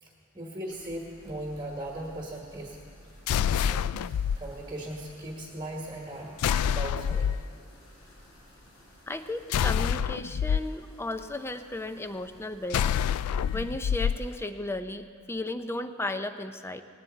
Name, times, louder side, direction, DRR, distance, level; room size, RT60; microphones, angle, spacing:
voice 1, 0.0-2.8 3.5-4.0 4.4-6.4 6.7-7.3, right 1 dB, 20° right, -1 dB, 1.2 m, -38 dB
sound 1, 0.7-14.5, equal, 65° left, 4.5 m, -54 dB
sound 2, 3.3-4.4 6.4-7.4 9.5-10.6 12.7-14.2, left 8 dB, 85° left, 0.3 m, -26 dB
voice 2, 9.1-13.0 13.5-16.8, left 2 dB, 10° left, 9 dB, 0.5 m, -35 dB
18.5 x 18.5 x 4.0 m, 2.3 s
head